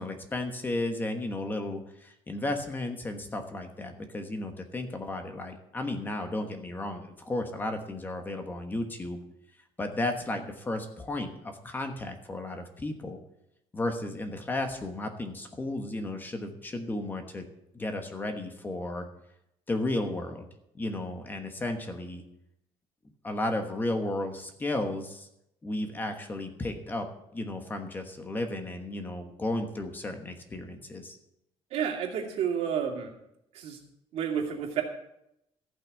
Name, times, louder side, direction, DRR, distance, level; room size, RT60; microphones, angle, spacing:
voice 1, 0.0-9.2 9.8-13.2 13.7-17.4 17.7-19.1 19.7-20.4 20.7-22.2 23.2-25.3 25.6-27.1 27.3-31.2, left 2 dB, 15° left, 5 dB, 1.2 m, -34 dB
voice 2, 31.7-33.1 33.5-33.8 34.1-34.8, right 8 dB, 70° right, 1 dB, 2.5 m, -30 dB
14.5 x 6.1 x 8.2 m, 0.81 s
cardioid pair, 165°, 11 cm